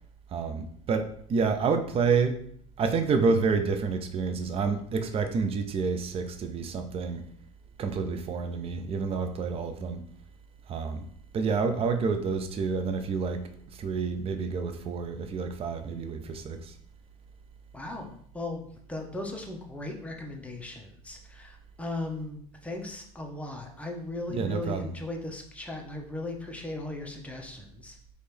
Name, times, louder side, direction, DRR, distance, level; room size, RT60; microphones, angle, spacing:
voice 1, 0.3-2.4 2.8-7.3 7.8-10.0 10.7-11.1 11.3-16.8 24.3-24.9, right 5 dB, 35° right, 7 dB, 0.6 m, -29 dB
voice 2, 17.7-28.0, left 2 dB, 10° left, 1 dB, 0.9 m, -37 dB
4.2 x 3.2 x 3.4 m, 0.64 s
supercardioid pair, 95°, 17 cm